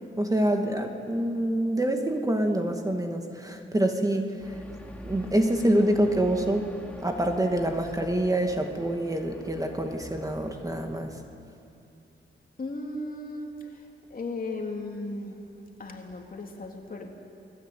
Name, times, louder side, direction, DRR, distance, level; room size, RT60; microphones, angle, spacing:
voice 1, 0.2-4.3 5.0-6.7 7.0-11.1, right 1 dB, 15° right, 4 dB, 2.2 m, -26 dB
sound 1, 4.4-10.9, left 1 dB, 5° left, 3.3 m, -45 dB
voice 2, 12.6-13.8 14.1-15.4 15.8-17.1, left 2 dB, 45° left, 2 dB, 3.4 m, -36 dB
28.5 x 20.5 x 9.2 m, 2.5 s
wide cardioid pair, 115°, 21 cm